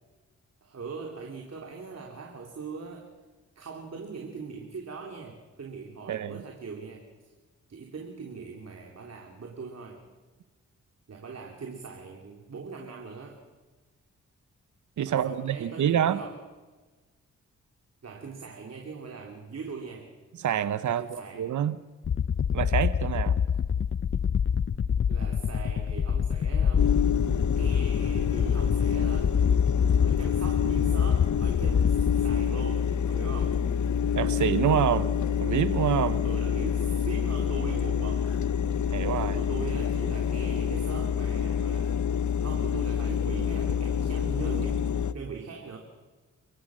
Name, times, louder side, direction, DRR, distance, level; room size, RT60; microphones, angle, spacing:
voice 1, 0.6-3.1 3.5-7.3 7.7-10.0 11.1-13.4 15.0-16.4 18.0-20.1 20.8-21.5 25.1-27.0 27.6-29.4 30.0-33.6 36.2-38.4 39.1-42.0 42.4-45.8, right 5 dB, 60° right, 1 dB, 3.2 m, -41 dB
voice 2, 6.1-6.4 15.0-16.2 20.4-21.8 22.5-23.4 34.1-35.1 35.4-36.2 38.9-39.4, right 9 dB, 75° right, 13 dB, 0.9 m, -27 dB
sound 1, 22.0-32.4, left 7 dB, 45° left, 0.7 m, -26 dB
sound 2, 26.8-45.1, left 7 dB, 75° left, 0.9 m, -27 dB
29.0 x 16.5 x 6.3 m, 1.3 s
cardioid pair, 70°, 30 cm